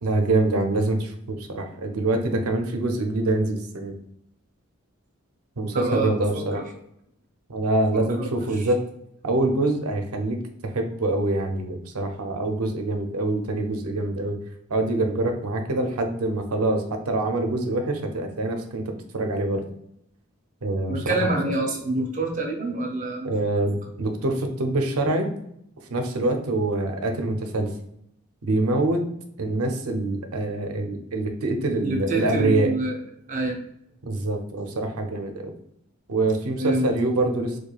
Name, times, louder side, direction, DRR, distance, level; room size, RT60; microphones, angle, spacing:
voice 1, 0.0-4.0 5.6-6.6 7.5-8.8 9.2-10.4 10.7-14.4 14.7-19.6 20.6-21.0 23.2-25.3 25.9-27.7 28.4-29.0 29.4-32.7 34.0-35.5 36.1-37.6, right 2 dB, 85° right, 4 dB, 0.6 m, -25 dB
voice 2, 5.7-6.6 8.2-8.7 20.9-23.3 31.8-33.0 33.3-33.6 36.6-36.9, right 2 dB, 35° right, 1 dB, 0.6 m, -27 dB
4.6 x 2.3 x 2.3 m, 0.73 s
head